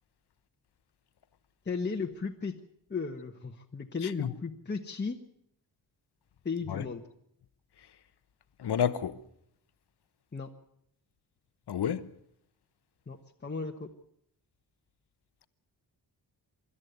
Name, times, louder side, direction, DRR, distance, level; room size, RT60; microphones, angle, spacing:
voice 1, 1.6-2.6 2.9-5.2 6.4-7.1 10.3-10.5 13.1-13.2 13.4-13.9, left 4 dB, 25° left, 1.2 m, -35 dB
voice 2, 8.6-9.2 11.7-12.1, left 8 dB, 70° left, 1.1 m, -30 dB
25.0 x 13.0 x 8.2 m
wide cardioid pair, 145°, 41 cm